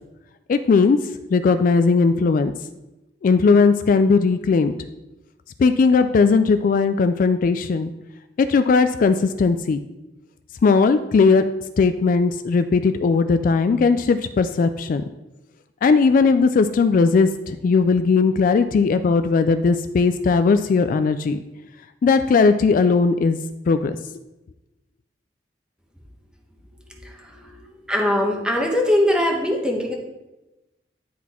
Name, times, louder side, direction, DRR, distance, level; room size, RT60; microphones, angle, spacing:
voice 1, 0.5-1.0 1.3-2.5 3.2-4.7 5.6-7.9 8.4-9.8 10.6-11.4 11.8-15.0 15.8-21.4 22.0-23.4 23.7-24.0, left 4 dB, 50° left, 10 dB, 0.3 m, -18 dB
voice 2, 26.9-29.9, left 1 dB, 5° right, 0 dB, 1.1 m, -22 dB
10.0 x 4.1 x 4.3 m, 1.0 s
head